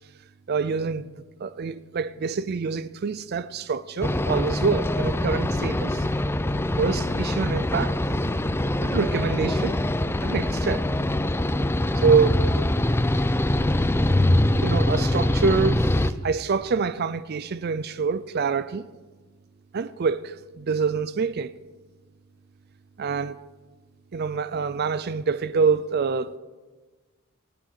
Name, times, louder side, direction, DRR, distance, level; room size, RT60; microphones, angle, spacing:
voice 1, 0.5-1.1 1.4-6.1 6.8-8.0 8.8-9.8 10.2-10.9 11.9-12.5 14.6-15.9 16.2-18.9 19.7-21.6 23.0-23.4 24.1-26.4, right 5 dB, 50° right, 0.4 m, -26 dB
sound 1, 4.0-16.1, left 1 dB, 10° left, 0.5 m, -23 dB
18.5 x 11.5 x 6.4 m
head